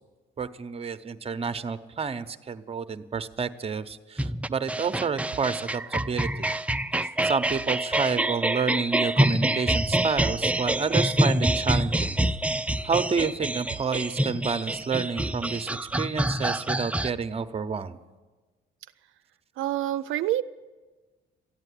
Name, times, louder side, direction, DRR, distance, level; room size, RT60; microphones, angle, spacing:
voice 1, 0.4-6.5 7.0-12.2 12.8-18.0, right 5 dB, 30° right, 10 dB, 0.8 m, -29 dB
sound 1, 4.2-17.1, right 1 dB, 5° right, 0.4 m, -26 dB
voice 2, 19.6-20.4, right 13 dB, 80° right, 10 dB, 0.4 m, -26 dB
14.0 x 9.0 x 9.9 m, 1.3 s
cardioid pair, 90°, 20 cm